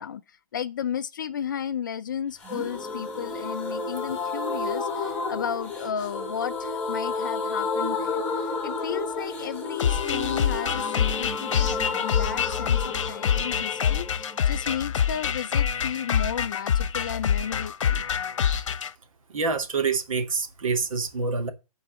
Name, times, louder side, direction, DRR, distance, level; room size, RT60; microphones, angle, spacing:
voice 1, 0.0-18.0, left 8 dB, 30° left, 0.5 m, -34 dB
sound 1, 2.4-16.0 16.3-16.4 16.6-16.7, left 4 dB, 10° left, 2.2 m, -31 dB
sound 2, 9.8-18.9, left 8 dB, 55° left, 1.0 m, -26 dB
voice 2, 19.3-21.5, right 4 dB, 60° right, 2.4 m, -26 dB
9.1 x 4.6 x 7.5 m
hypercardioid pair, 160°, 19 cm